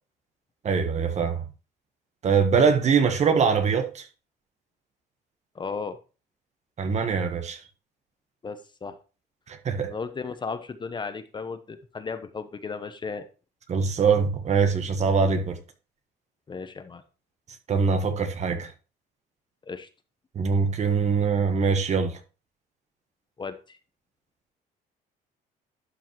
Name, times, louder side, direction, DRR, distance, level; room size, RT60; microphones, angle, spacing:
voice 1, 0.6-1.4 2.2-4.1 6.8-7.6 9.5-9.9 13.7-15.6 17.7-18.7 20.3-22.2, right 5 dB, 40° right, 1.4 m, -23 dB
voice 2, 5.5-6.0 8.4-9.0 9.9-13.2 16.5-17.0 19.6-19.9 23.4-23.8, left 5 dB, 25° left, 1.0 m, -35 dB
12.0 x 5.5 x 3.1 m
cardioid pair, 110°, 17 cm